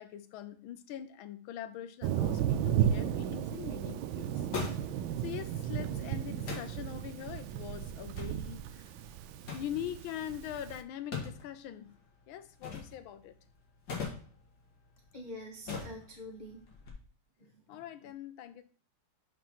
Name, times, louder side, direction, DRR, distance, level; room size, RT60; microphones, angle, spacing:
voice 1, 0.0-4.4 5.2-9.0 9.5-11.9 12.3-13.4 17.7-18.6, left 10 dB, 85° left, 11 dB, 1.4 m, -42 dB
Thunder, 2.0-10.8, right 10 dB, 85° right, 1.4 m, -34 dB
sound 1, 2.8-16.9, left 5 dB, 55° left, 2.0 m, -45 dB
voice 2, 15.1-16.6 17.4-18.1, left 1 dB, 30° left, -1 dB, 0.8 m, -47 dB
5.4 x 5.4 x 5.5 m, 0.41 s
omnidirectional pair, 2.2 m